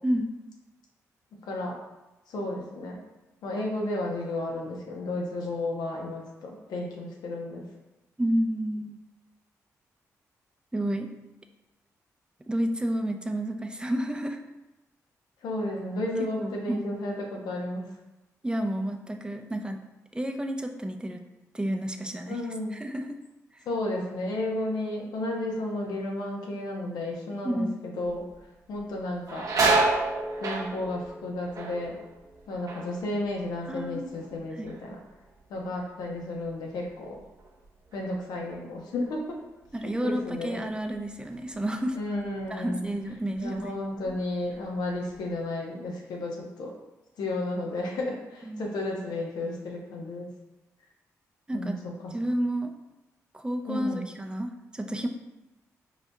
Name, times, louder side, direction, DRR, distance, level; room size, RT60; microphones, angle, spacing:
voice 1, 1.5-1.8 2.3-3.0 3.4-7.6 15.4-17.9 22.2-22.8 23.7-28.3 28.7-29.5 30.4-32.0 32.5-35.0 35.5-37.2 37.9-39.4 39.8-40.7 41.9-42.9 43.4-46.7 47.2-50.3 51.5-52.1 53.7-54.0, left 2 dB, 75° left, -1 dB, 0.7 m, -33 dB
voice 2, 8.2-9.0 10.7-11.1 12.5-14.4 16.4-16.9 18.4-19.8 20.1-21.2 21.5-22.4 22.7-23.2 27.4-27.7 33.7-34.2 34.5-34.7 39.7-42.0 42.5-43.7 48.5-48.8 51.5-51.8 52.1-52.7 53.3-55.1, right 1 dB, 10° right, 4 dB, 0.5 m, -30 dB
sound 1, 28.0-28.4 28.8-34.4 34.6-35.3 35.7-38.7 39.0-39.1 40.1-40.3 40.7-41.8 42.3-42.5 43.1-43.7 44.0-45.2, right 3 dB, 55° right, 0.8 m, -31 dB
4.8 x 2.6 x 2.2 m, 1.0 s
supercardioid pair, 45°, 7 cm